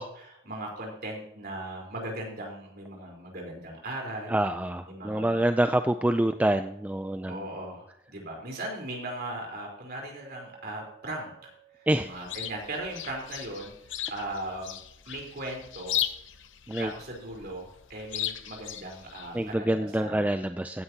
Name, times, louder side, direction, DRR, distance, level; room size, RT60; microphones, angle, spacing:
voice 1, 0.0-4.3 4.9-5.4 7.3-14.8 15.1-16.0 16.8-20.2, right 1 dB, 45° right, 0 dB, 4.1 m, -38 dB
voice 2, 4.3-7.4 11.9-12.1 16.7-16.9 19.3-20.8, right 1 dB, 5° right, 8 dB, 0.3 m, -26 dB
Chink clink, 10.2-14.3, right 8 dB, 70° right, 5.3 m, -58 dB
Chirp tweet, 11.9-19.6, left 11 dB, 65° left, 0.8 m, -37 dB
16.0 x 9.7 x 2.9 m, 0.76 s
head